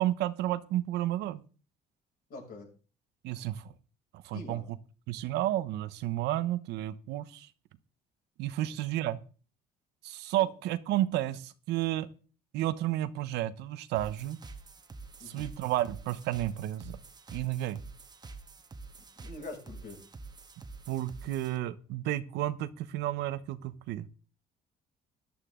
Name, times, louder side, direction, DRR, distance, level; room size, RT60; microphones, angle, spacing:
voice 1, 0.0-1.4 3.2-3.6 4.2-4.8 5.1-7.5 8.4-9.2 10.0-12.1 12.5-14.4 15.3-17.0 17.3-17.8 20.9-24.1, right 14 dB, 85° right, 14 dB, 0.9 m, -31 dB
voice 2, 2.3-2.7 4.3-4.6 10.4-10.5 15.2-15.5 19.2-20.0, left 3 dB, 65° left, 1 dB, 6.6 m, -44 dB
sound 1, 13.9-21.6, right 3 dB, 25° right, 1.3 m, -47 dB
13.5 x 11.5 x 3.8 m, 0.38 s
cardioid pair, 110°, 17 cm